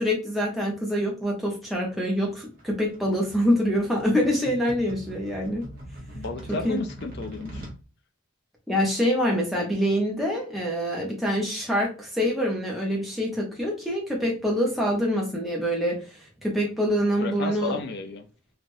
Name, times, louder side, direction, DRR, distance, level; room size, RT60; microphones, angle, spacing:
voice 1, 0.0-5.6 6.5-6.8 8.7-16.0 16.4-17.8, equal, ahead, 0.8 m, -25 dB
sound 1, 2.2-7.8, right 1 dB, 40° right, 0.9 m, -42 dB
voice 2, 6.1-7.7 17.2-18.2, left 3 dB, 50° left, 0.4 m, -33 dB
3.2 x 2.4 x 2.6 m
head